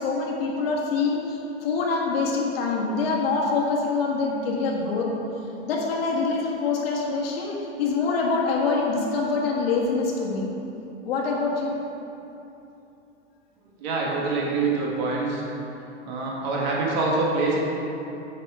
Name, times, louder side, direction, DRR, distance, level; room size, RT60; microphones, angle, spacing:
voice 1, 0.0-5.1 5.7-10.5 11.0-11.8, left 4 dB, 55° left, -2 dB, 1.7 m, -25 dB
voice 2, 13.8-15.4 16.0-17.6, right 3 dB, 40° right, -3 dB, 1.7 m, -25 dB
8.8 x 5.9 x 4.8 m, 3.0 s
supercardioid pair, 165°, 35 cm